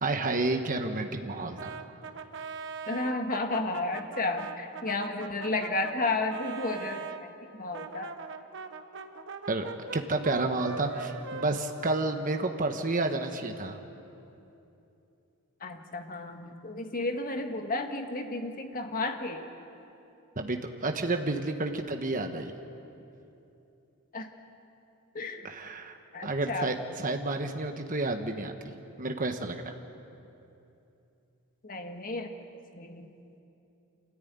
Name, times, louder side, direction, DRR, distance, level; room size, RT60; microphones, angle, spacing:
voice 1, 0.0-1.8 9.5-9.7 9.9-13.8 20.4-22.5 25.4-26.0 26.2-28.5 29.0-29.7, right 2 dB, 35° right, 5 dB, 1.1 m, -30 dB
Brass instrument, 1.6-7.2 7.7-12.5, right 5 dB, 55° right, 1.2 m, -41 dB
voice 2, 2.9-8.2 15.6-19.5 24.1-24.3 25.1-25.5 26.1-26.7 31.6-32.4 32.7-33.1, left 2 dB, 40° left, 5 dB, 1.6 m, -32 dB
26.0 x 14.0 x 9.5 m, 2.8 s
head